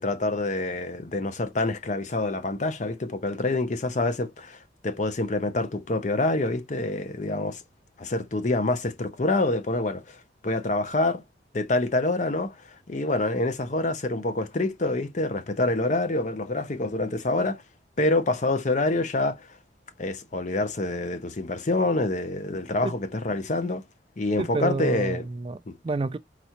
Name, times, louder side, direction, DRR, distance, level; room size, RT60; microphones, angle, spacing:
voice 1, 0.0-7.6 8.0-10.2 10.4-11.2 11.5-17.6 18.0-19.5 20.0-23.8 24.2-25.2 25.7-25.8, left 2 dB, 45° left, 0.7 m, -26 dB
voice 2, 24.4-25.6 25.8-26.2, right 3 dB, 30° right, 0.3 m, -29 dB
4.4 x 4.1 x 2.9 m
head